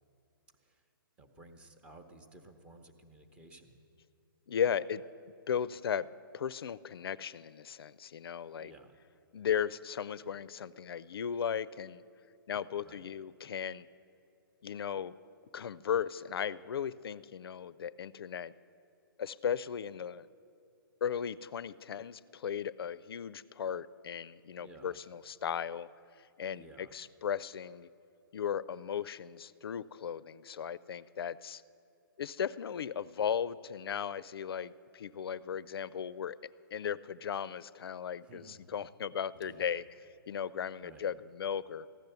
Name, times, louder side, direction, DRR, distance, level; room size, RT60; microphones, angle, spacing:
voice 1, 1.2-3.8 8.6-8.9 12.8-13.0 24.6-25.0 26.5-26.9 38.2-38.7 39.3-39.7 40.8-41.1, right 2 dB, 10° right, 6 dB, 0.7 m, -55 dB
voice 2, 4.5-5.0 5.5-6.1 6.3-8.7 9.3-12.0 12.5-13.9 14.6-15.1 15.5-18.5 19.2-20.3 21.0-25.9 26.4-27.9 28.3-31.6 32.2-36.4 36.7-39.9 40.3-41.9, left 8 dB, 80° left, 18 dB, 0.4 m, -36 dB
15.0 x 10.5 x 6.8 m, 2.6 s
hypercardioid pair, 165°, 12 cm